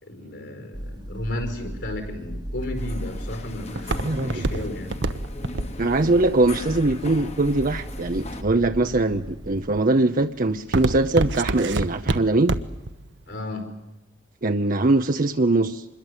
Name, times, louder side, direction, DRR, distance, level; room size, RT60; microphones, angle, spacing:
voice 1, 0.0-5.0 13.3-13.7, left 1 dB, 70° left, 6 dB, 4.9 m, -34 dB
sound 1, 0.7-9.8, equal, 25° right, 1.2 m, -37 dB
Walk footsteps, 2.6-7.7 8.3-8.8 9.3-9.7 10.0-12.9 13.2-13.3, right 2 dB, 70° right, 1.1 m, -27 dB
sound 2, 2.8-8.4, left 2 dB, 35° left, 1.4 m, -39 dB
voice 2, 4.0-4.5 5.8-12.6 14.4-15.9, right 2 dB, 45° right, 7 dB, 0.8 m, -22 dB
26.0 x 21.5 x 8.2 m, 0.99 s
head